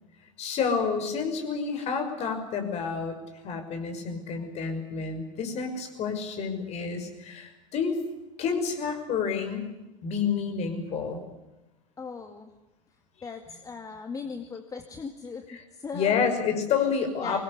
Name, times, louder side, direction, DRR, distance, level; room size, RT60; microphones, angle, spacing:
voice 1, 0.4-3.2 3.4-8.0 8.4-9.7 10.0-11.2 15.5-15.6 15.9-17.4, left 6 dB, 40° left, 6 dB, 5.9 m, -29 dB
voice 2, 12.0-12.5 13.2-16.3 16.8-16.9 17.2-17.4, left 5 dB, 20° left, 6 dB, 2.2 m, -39 dB
25.0 x 20.5 x 8.3 m, 1.0 s
figure-of-eight pair, 75°, 16 cm